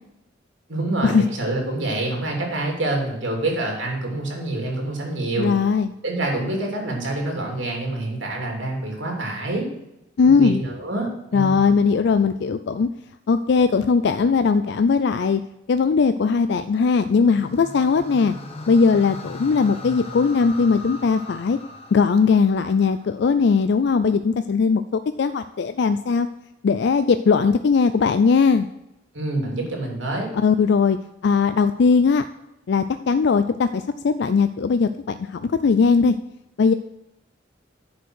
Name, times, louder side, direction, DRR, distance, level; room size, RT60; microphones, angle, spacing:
voice 1, 0.7-5.5 6.0-9.6 10.2-11.7 29.1-30.3, right 2 dB, 90° right, 0 dB, 2.9 m, -26 dB
voice 2, 5.4-5.9 10.2-10.6 11.3-12.9 13.3-15.4 15.7-18.3 18.7-21.6 21.9-26.3 26.6-28.7 30.3-31.0 31.2-32.2 32.7-36.1 36.6-36.7, left 5 dB, 65° left, 10 dB, 0.4 m, -19 dB
sound 1, 17.0-23.3, left 2 dB, 35° left, 1.3 m, -39 dB
10.0 x 5.2 x 6.3 m, 0.89 s
head